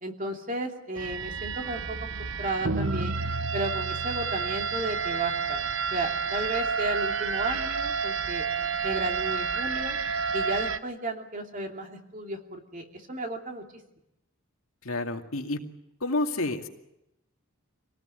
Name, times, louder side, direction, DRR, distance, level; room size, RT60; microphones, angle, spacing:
voice 1, 0.0-3.2 3.5-5.6 5.9-8.5 8.8-10.0 10.3-13.7, right 1 dB, 40° right, 3 dB, 2.8 m, -33 dB
sound 1, 1.0-10.8, right 5 dB, 65° right, 0.9 m, -30 dB
voice 2, 14.8-15.6 16.0-16.7, left 2 dB, 75° left, 3 dB, 2.3 m, -29 dB
25.5 x 18.5 x 9.4 m, 0.88 s
head